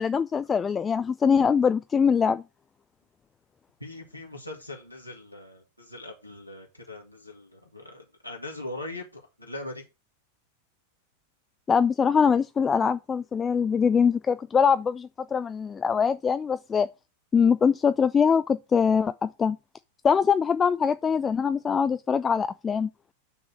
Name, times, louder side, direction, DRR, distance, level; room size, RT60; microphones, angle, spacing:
voice 1, 0.0-2.4 11.7-16.9 17.3-19.6 20.0-22.9, left 6 dB, 20° left, 0.3 m, -23 dB
voice 2, 3.8-9.9, left 2 dB, 90° left, 2.0 m, -41 dB
9.2 x 3.7 x 6.1 m
figure-of-eight pair, 90°, 0 cm